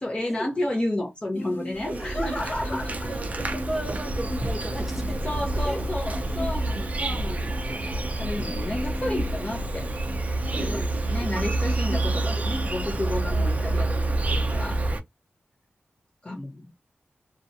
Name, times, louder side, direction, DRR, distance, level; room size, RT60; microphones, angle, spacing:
voice 1, 0.0-3.3 5.2-9.9 10.6-10.8 11.1-14.8 16.2-16.7, left 1 dB, 25° left, 0.6 m, -32 dB
sound 1, 1.3-13.1, left 1 dB, 75° left, 1.0 m, -40 dB
Insect, 1.7-15.0, right 2 dB, 40° right, 0.4 m, -28 dB
voice 2, 1.8-2.4 2.7-2.8 3.1-5.2 5.6-5.8 6.3-6.4 10.5-11.3 13.3-14.0, right 1 dB, 5° right, 0.9 m, -36 dB
2.4 x 2.1 x 2.6 m
wide cardioid pair, 100°, 4 cm